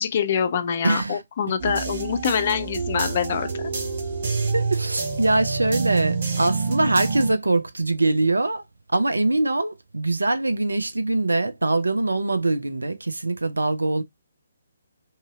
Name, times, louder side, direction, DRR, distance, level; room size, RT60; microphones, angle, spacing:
voice 1, 0.0-3.7, left 7 dB, 40° left, 0.5 m, -25 dB
voice 2, 0.8-1.2 4.5-8.6 8.9-14.0, right 2 dB, 70° right, 0.5 m, -23 dB
sound 1, 1.6-7.3, right 4 dB, 45° right, 1.0 m, -27 dB
2.7 x 2.6 x 2.4 m
figure-of-eight pair, 135°, 0 cm